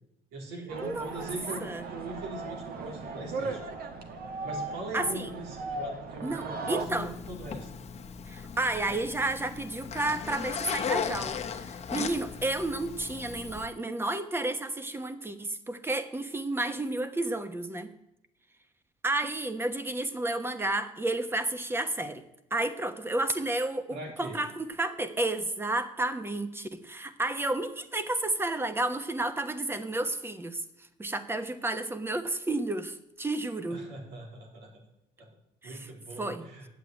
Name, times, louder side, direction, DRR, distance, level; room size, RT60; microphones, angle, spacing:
voice 1, 0.3-3.6 4.4-7.7 23.9-24.4 33.7-34.7 35.2-35.3 35.6-36.7, right 2 dB, 90° right, 2 dB, 3.4 m, -41 dB
sound 1, 0.7-6.9, right 3 dB, 65° right, 1.7 m, -37 dB
voice 2, 0.8-1.3 1.6-1.9 4.9-5.3 6.2-7.1 8.3-17.9 19.0-22.2 22.5-30.6 31.0-33.8 35.6-35.9 36.2-36.5, right 2 dB, 15° right, 10 dB, 1.1 m, -31 dB
Zipper (clothing), 6.8-13.7, left 7 dB, 40° left, 1.2 m, -37 dB
9.3 x 8.1 x 9.1 m, 0.84 s
cardioid pair, 110°, 17 cm